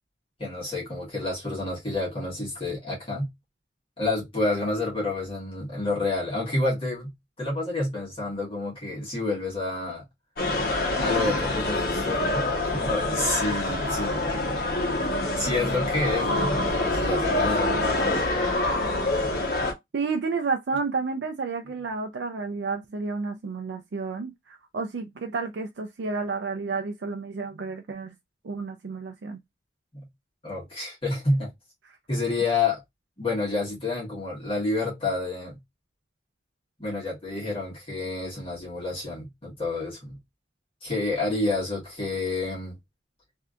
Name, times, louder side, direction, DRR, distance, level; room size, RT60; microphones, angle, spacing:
voice 1, 0.4-3.3 4.0-10.0 11.0-14.6 15.3-18.2 29.9-30.1 30.4-31.5 32.1-32.8 33.2-35.6 36.8-40.2 40.8-42.7, left 2 dB, 30° left, 1.6 m, -29 dB
sound 1, 10.4-19.7, left 2 dB, 55° left, 1.1 m, -26 dB
voice 2, 19.9-28.1 28.4-29.4 31.8-32.0, right 4 dB, 75° right, 0.4 m, -31 dB
3.3 x 2.7 x 2.4 m
head